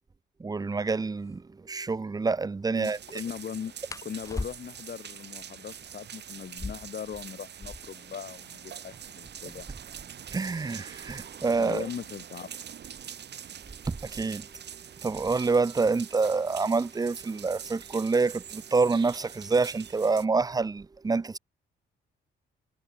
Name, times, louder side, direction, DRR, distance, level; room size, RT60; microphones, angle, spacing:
voice 1, 0.4-3.2 10.3-11.9 13.9-14.5 15.0-21.4, right 4 dB, 20° right, 0.8 m, -27 dB
sound 1, 1.2-1.4 3.8-5.0 6.4-8.1 8.4-8.5 8.7-9.3 9.9-12.4 13.5-13.8 14.2-14.6 15.0-15.7, left 3 dB, 15° left, 1.2 m, -41 dB
voice 2, 2.7-9.7 11.6-12.5, left 7 dB, 50° left, 6.2 m, -39 dB
sound 2, 2.8-20.3, right 9 dB, 60° right, 6.3 m, -44 dB
cardioid pair, 90°, 20 cm